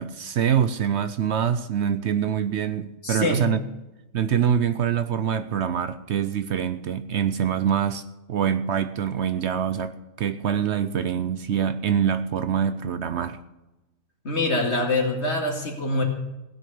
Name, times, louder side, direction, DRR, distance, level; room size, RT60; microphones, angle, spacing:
voice 1, 0.0-3.6 4.1-13.4, right 8 dB, 65° right, 0.8 m, -25 dB
voice 2, 3.0-3.6 14.2-16.0, left 2 dB, 55° left, 2.5 m, -24 dB
16.5 x 6.2 x 8.7 m
omnidirectional pair, 1.4 m